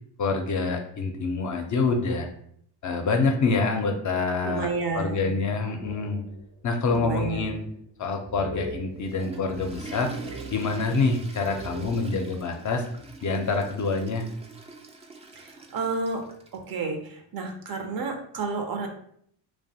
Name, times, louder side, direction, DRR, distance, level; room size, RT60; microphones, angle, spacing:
voice 1, 0.2-2.3 2.8-4.7 4.9-6.2 6.6-7.7 8.0-10.1 10.5-12.9 13.2-14.3, left 4 dB, 45° left, 4 dB, 0.5 m, -26 dB
voice 2, 4.4-5.3 6.9-7.5 15.3-16.2 16.5-18.9, right 4 dB, 50° right, 4 dB, 0.6 m, -31 dB
sound 1, 5.8-6.6 6.9-7.8 8.2-11.0 11.3-12.3, right 1 dB, 90° right, 0.9 m, -40 dB
Water / Toilet flush, 8.8-16.6, right 3 dB, 15° right, 0.3 m, -44 dB
2.4 x 2.2 x 2.7 m, 0.65 s
supercardioid pair, 70°, 45 cm